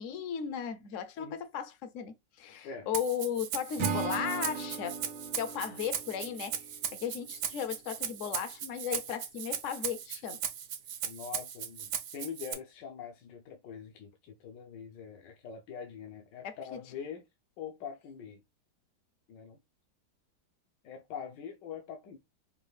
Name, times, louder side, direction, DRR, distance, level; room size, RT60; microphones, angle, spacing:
voice 1, 0.0-5.0 5.3-10.4 16.4-16.8, left 8 dB, 65° left, 0.8 m, -36 dB
Rattle (instrument), 2.9-12.5, right 8 dB, 65° right, 0.8 m, -38 dB
Acoustic guitar / Strum, 3.8-7.0, right 5 dB, 80° right, 1.4 m, -37 dB
voice 2, 11.0-17.2 17.6-18.4 19.3-19.6 20.8-22.2, left 7 dB, 80° left, 1.4 m, -43 dB
5.4 x 2.3 x 3.1 m
omnidirectional pair, 1.9 m